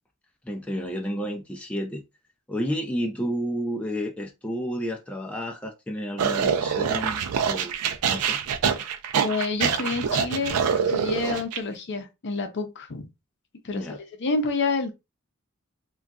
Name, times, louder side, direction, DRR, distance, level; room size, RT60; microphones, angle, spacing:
voice 1, 0.5-2.0 2.5-7.8 8.1-8.4 13.7-14.0, equal, 5° left, 0.3 m, -31 dB
sound 1, 6.2-11.6, right 7 dB, 85° right, 0.4 m, -25 dB
voice 2, 9.2-13.1 13.6-14.9, left 3 dB, 55° left, 0.6 m, -29 dB
3.7 x 2.3 x 2.2 m
head